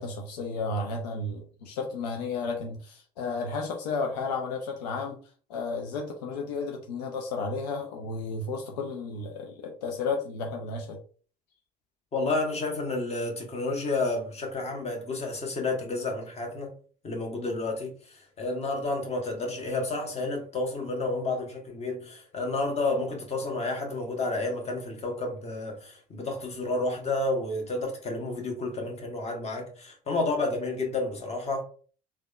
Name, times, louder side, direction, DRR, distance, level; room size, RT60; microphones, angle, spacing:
voice 1, 0.0-5.2 5.5-11.0, left 3 dB, 75° left, 0.5 m, -33 dB
voice 2, 12.1-16.7 17.0-31.6, left 2 dB, 30° left, 1.1 m, -30 dB
3.3 x 2.2 x 2.3 m
hypercardioid pair, 65°, 21 cm